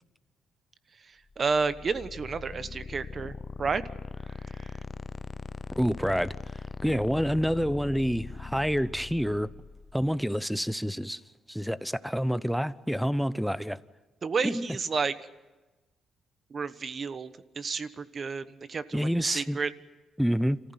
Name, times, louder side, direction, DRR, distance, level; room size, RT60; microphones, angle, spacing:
sound 1, 1.3-10.2, left 4 dB, 35° left, 0.6 m, -41 dB
voice 1, 1.4-3.8 4.6-4.7 6.9-7.0 14.2-15.1 16.5-17.3 17.6-19.7, right 5 dB, 40° right, 1.1 m, -31 dB
voice 2, 5.8-6.3 6.8-9.5 9.9-11.2 11.5-13.8 14.4-14.8 18.9-19.6 20.2-20.6, equal, ahead, 0.7 m, -28 dB
26.5 x 15.0 x 9.5 m
cardioid pair, 90°, 0 cm